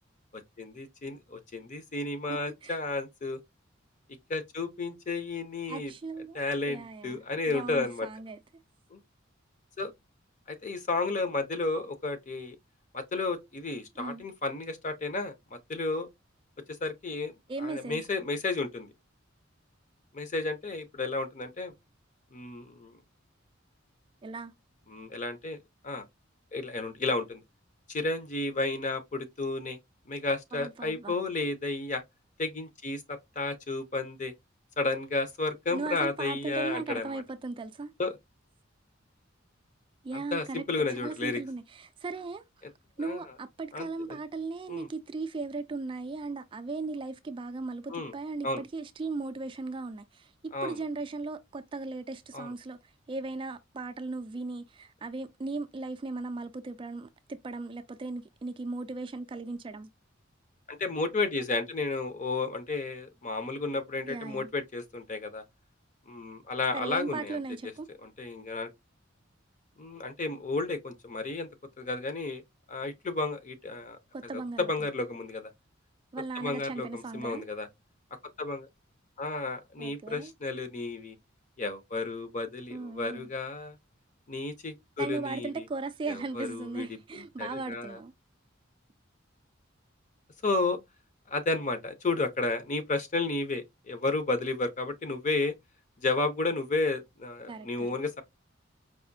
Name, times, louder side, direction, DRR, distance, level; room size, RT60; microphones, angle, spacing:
voice 1, 0.3-3.4 4.3-5.9 6.3-8.1 8.9-9.0 9.8-9.9 10.5-12.6 12.9-16.1 16.8-18.9 20.1-21.7 22.3-22.9 24.9-25.6 25.8-26.1 26.5-27.4 27.9-29.8 30.1-32.0 32.4-34.3 34.8-37.2 38.0-38.2 40.1-41.4 43.0-43.2 43.7-44.2 44.7-44.9 47.9-48.1 48.4-48.6 50.5-50.8 52.3-52.5 60.7-65.4 66.1-67.4 68.0-68.7 69.8-71.5 71.8-72.4 72.7-74.0 74.3-75.5 76.4-77.7 78.4-78.7 79.2-81.2 81.6-83.8 84.3-85.7 86.1-86.9 87.1-88.0 90.4-90.8 91.3-95.5 96.0-98.2, left 3 dB, 40° left, 0.7 m, -32 dB
voice 2, 2.3-2.8 5.7-6.4 6.7-8.4 14.0-14.2 17.5-18.0 24.2-24.5 30.5-31.1 35.7-37.9 40.0-40.6 40.9-42.4 43.0-59.9 64.1-64.5 66.7-67.9 74.1-74.7 76.1-77.5 79.8-80.3 82.7-83.3 85.0-88.1 97.5-97.9, right 3 dB, 25° right, 0.3 m, -37 dB
4.8 x 2.6 x 2.6 m
head